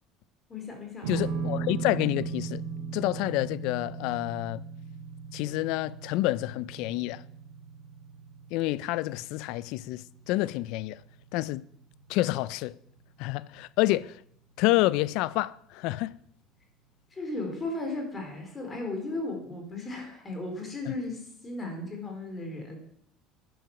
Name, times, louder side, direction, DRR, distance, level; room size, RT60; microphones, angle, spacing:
voice 1, 0.5-1.3 17.1-22.8, left 2 dB, 25° left, 4.0 m, -36 dB
sound 1, 1.0-13.5, right 5 dB, 80° right, 2.2 m, -39 dB
voice 2, 1.1-2.6 2.9-4.6 5.3-7.2 8.5-11.0 11.3-11.6 12.1-12.8 13.2-14.2 14.6-16.1 20.9-21.0, left 17 dB, 70° left, 0.4 m, -28 dB
10.5 x 10.5 x 6.0 m
supercardioid pair, 115°, 0 cm